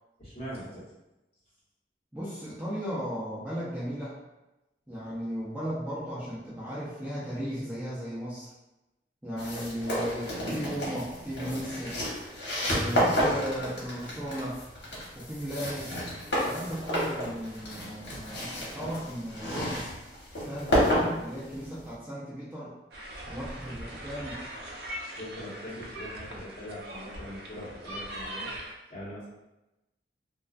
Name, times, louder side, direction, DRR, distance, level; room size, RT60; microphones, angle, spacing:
voice 1, 0.2-0.8 18.1-18.2 25.1-28.5 28.9-29.3, equal, 35° left, -10 dB, 1.1 m, -41 dB
voice 2, 2.1-4.2 4.9-8.5 9.2-12.0 12.7-14.6 15.1-15.9 16.3-18.5 18.7-19.8 20.4-22.7 23.3-24.4, equal, 10° right, -10 dB, 0.5 m, -36 dB
sound 1, 9.4-21.9, equal, 80° left, 0.9 m, -31 dB
sound 2, 22.9-28.7, right 1 dB, 65° right, 0.4 m, -41 dB
2.3 x 2.3 x 2.3 m, 0.97 s
head